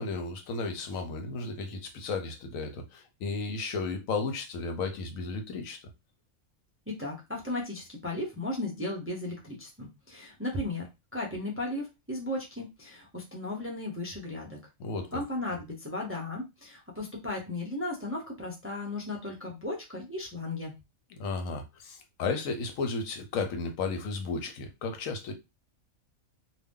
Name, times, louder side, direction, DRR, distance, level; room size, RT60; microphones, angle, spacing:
voice 1, 0.0-5.8 14.8-15.2 21.1-25.3, left 4 dB, 80° left, 1.1 m, -34 dB
voice 2, 6.9-10.9 11.1-14.6 15.1-20.7, left 2 dB, 15° right, 0.5 m, -35 dB
2.6 x 2.2 x 3.5 m
omnidirectional pair, 1.4 m